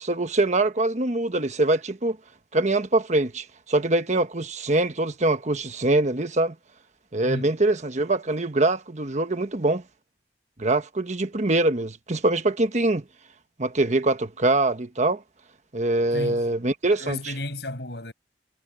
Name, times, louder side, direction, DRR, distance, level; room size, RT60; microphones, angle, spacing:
voice 1, 0.0-2.2 2.5-6.5 7.1-9.8 10.6-13.0 13.6-15.2 15.7-17.2, right 2 dB, 40° right, 1.3 m, -23 dB
voice 2, 7.2-7.5 16.1-16.5 17.0-18.1, left 1 dB, 70° left, 7.7 m, -33 dB
head